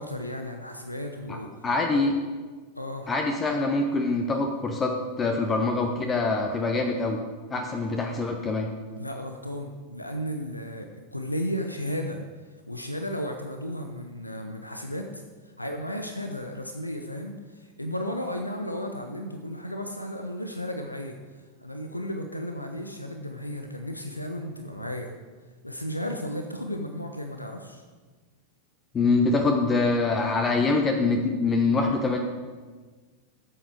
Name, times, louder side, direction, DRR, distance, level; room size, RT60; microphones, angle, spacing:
voice 1, 0.0-1.5 1.9-2.0 2.8-3.1 9.0-12.2 12.7-21.2 21.6-25.1 25.6-27.8, equal, 85° left, 4 dB, 0.8 m, -34 dB
voice 2, 1.6-2.1 3.1-7.2 7.5-8.7 28.9-32.2, left 3 dB, 20° left, 3 dB, 1.1 m, -24 dB
13.5 x 7.9 x 4.8 m, 1.4 s
figure-of-eight pair, 90°, 0 cm